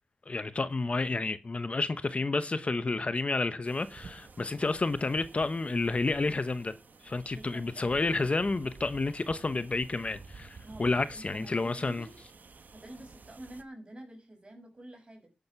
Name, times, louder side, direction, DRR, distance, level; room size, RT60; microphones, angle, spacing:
voice 1, 0.3-6.7 7.0-12.1, left 3 dB, 45° left, 0.9 m, -30 dB
sound 1, 3.6-13.6, right 4 dB, 70° right, 1.5 m, -52 dB
voice 2, 7.3-8.2 10.6-12.2 12.7-15.3, right 1 dB, 30° right, 6.4 m, -48 dB
11.0 x 10.5 x 5.8 m
wide cardioid pair, 90°, 3 cm